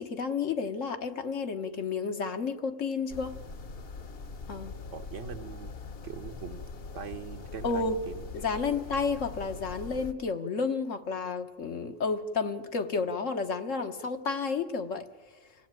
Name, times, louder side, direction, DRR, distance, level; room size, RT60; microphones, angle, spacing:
voice 1, 0.0-3.3 4.5-4.7 7.6-8.0 8.3-15.1, left 4 dB, 80° left, 7 dB, 1.7 m, -31 dB
sound 1, 3.1-10.1, left 4 dB, 55° left, 1.1 m, -42 dB
voice 2, 4.9-5.7 6.0-6.7 6.9-8.4, right 7 dB, 75° right, 5 dB, 1.3 m, -42 dB
26.5 x 16.0 x 9.0 m, 1.4 s
omnidirectional pair, 1.3 m